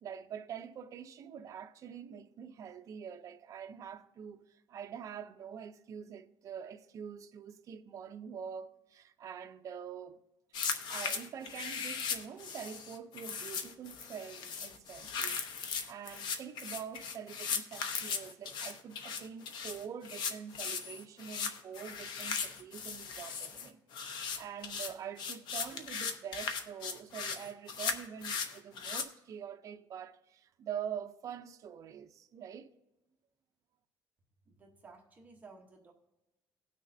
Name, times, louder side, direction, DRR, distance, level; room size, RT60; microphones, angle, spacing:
voice 1, 0.0-10.2 10.9-32.7, right 8 dB, 40° right, 0.6 m, -45 dB
sound 1, 10.5-29.0, left 6 dB, 60° left, 0.9 m, -38 dB
voice 2, 34.5-35.9, right 4 dB, 20° right, 1.1 m, -55 dB
18.5 x 6.2 x 2.7 m
cardioid pair, 170°, 9 cm